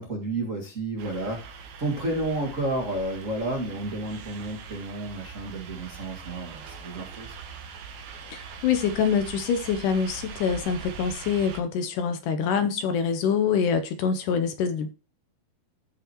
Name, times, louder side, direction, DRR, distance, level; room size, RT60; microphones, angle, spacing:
voice 1, 0.0-7.3, right 2 dB, 40° right, 1.1 m, -31 dB
sound 1, 1.0-11.6, right 6 dB, 60° right, 2.2 m, -42 dB
voice 2, 8.3-14.9, left 6 dB, 75° left, 1.9 m, -25 dB
15.0 x 6.1 x 3.0 m
omnidirectional pair, 4.6 m